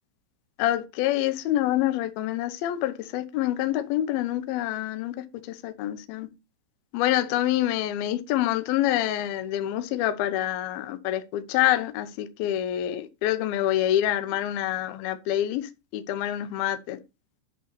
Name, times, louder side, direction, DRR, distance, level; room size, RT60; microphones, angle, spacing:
voice 1, 0.6-5.2 5.5-6.3 6.9-17.0, left 13 dB, 85° left, 2.1 m, -26 dB
11.0 x 3.9 x 6.8 m
omnidirectional pair, 5.7 m